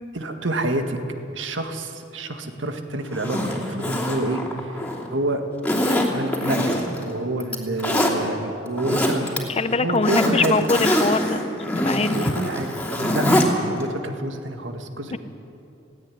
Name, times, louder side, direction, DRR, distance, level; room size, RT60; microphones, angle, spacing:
voice 1, 0.1-1.0 1.3-4.4 4.7-4.8 5.1-5.4 5.9-9.3 9.8-10.5 12.1-15.2, right 1 dB, 80° right, 6 dB, 1.9 m, -28 dB
Zipper (clothing), 3.1-5.1 5.6-7.0 7.4-8.1 8.6-9.4 9.7-13.5 13.8-13.9, left 1 dB, 5° left, 2.8 m, -23 dB
voice 2, 9.5-11.4 11.8-12.3 15.1-15.2, left 3 dB, 35° left, 12 dB, 0.8 m, -22 dB
18.0 x 17.5 x 10.0 m, 2.8 s
head